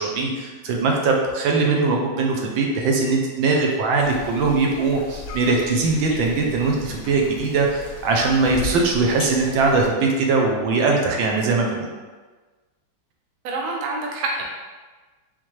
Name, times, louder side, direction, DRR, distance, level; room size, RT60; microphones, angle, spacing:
voice 1, 0.0-11.9, right 3 dB, 80° right, 0 dB, 1.4 m, -21 dB
sound 1, 4.0-9.9, left 4 dB, 70° left, 0.8 m, -36 dB
voice 2, 13.4-14.4, right 3 dB, 65° right, 0 dB, 1.0 m, -27 dB
4.4 x 3.7 x 3.1 m, 1.3 s
omnidirectional pair, 2.1 m